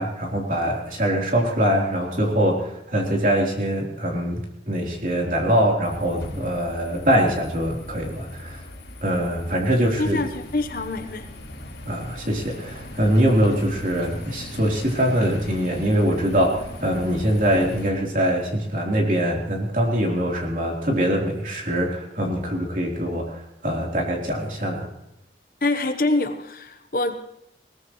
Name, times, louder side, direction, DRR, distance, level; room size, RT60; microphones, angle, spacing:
voice 1, 0.0-8.6 9.0-10.2 11.9-24.9, equal, 45° right, -1 dB, 3.6 m, -23 dB
sound 1, 5.8-17.9, left 1 dB, 75° left, 4.6 m, -39 dB
voice 2, 10.0-11.3 25.6-27.1, left 2 dB, 50° left, 7 dB, 1.1 m, -25 dB
20.5 x 18.0 x 3.1 m, 0.80 s
head